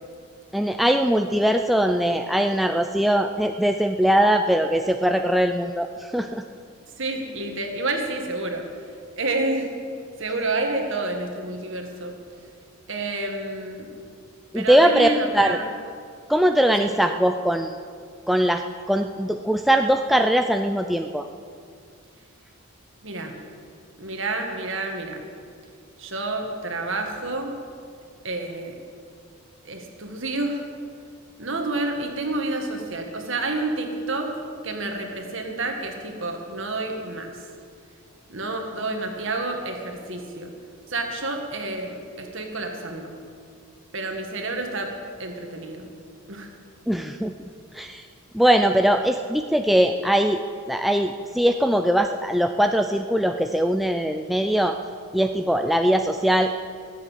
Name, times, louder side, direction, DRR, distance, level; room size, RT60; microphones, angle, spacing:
voice 1, 0.5-6.4 14.5-15.6 16.3-17.8 18.3-21.3 46.9-47.3 47.7-48.1 48.3-50.4 50.7-54.8 55.1-56.6, right 1 dB, ahead, 5 dB, 0.3 m, -21 dB
voice 2, 7.0-8.9 9.2-9.8 10.2-12.2 12.9-13.9 14.5-15.6 16.8-16.9 23.0-23.3 24.0-25.3 26.0-27.5 28.2-28.8 29.6-30.6 31.4-34.3 34.6-37.5 38.3-40.5 40.9-43.1 43.9-44.9 45.2-45.9 46.3-46.5, right 2 dB, 55° right, 3 dB, 1.9 m, -29 dB
19.5 x 8.3 x 7.4 m, 2.3 s
head